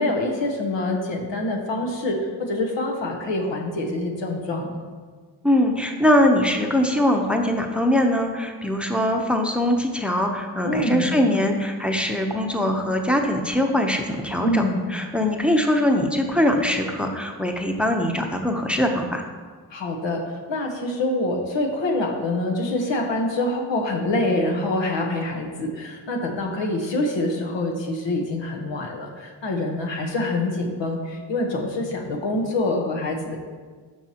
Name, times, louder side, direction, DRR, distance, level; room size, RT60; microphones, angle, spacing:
voice 1, 0.0-2.2 2.5-4.7 10.6-11.1 14.4-14.8 19.7-33.4, left 2 dB, 85° left, 1 dB, 1.2 m, -25 dB
voice 2, 5.4-14.6 14.9-19.3, left 1 dB, 5° right, 3 dB, 0.7 m, -22 dB
12.5 x 4.7 x 2.9 m, 1.5 s
cardioid pair, 65°, 43 cm